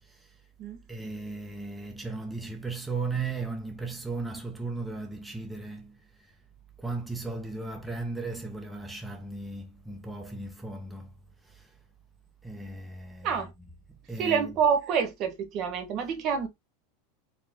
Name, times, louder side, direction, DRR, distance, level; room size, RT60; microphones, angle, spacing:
voice 1, 0.0-0.4 0.9-6.4 6.8-11.1 11.4-11.8 12.4-13.8 14.1-14.6, right 3 dB, 5° right, 0.7 m, -36 dB
voice 2, 14.2-16.5, right 7 dB, 45° right, 1.2 m, -27 dB
4.4 x 2.4 x 3.5 m
supercardioid pair, 135°, 0 cm